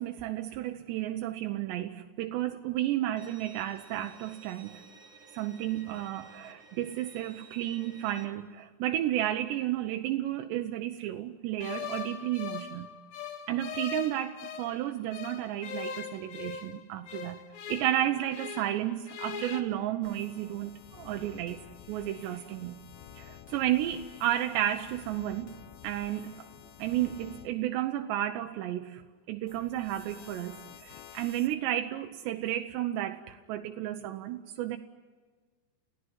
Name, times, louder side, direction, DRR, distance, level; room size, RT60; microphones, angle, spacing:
voice 1, 0.0-4.8 5.3-12.9 13.5-17.4 17.7-21.6 21.9-22.8 23.2-25.5 25.8-26.5 26.8-29.0 29.3-34.8, right 13 dB, 85° right, 5 dB, 3.1 m, -32 dB
Bowed string instrument, 3.2-8.2, right 3 dB, 50° right, 0.8 m, -54 dB
sound 1, 11.6-14.8 15.1-18.8 19.1-19.6, left 7 dB, 65° left, 3.3 m, -40 dB
sound 2, 20.0-27.5 29.5-31.6, left 10 dB, 85° left, 3.5 m, -51 dB
29.5 x 17.0 x 9.7 m, 1.4 s
omnidirectional pair, 4.9 m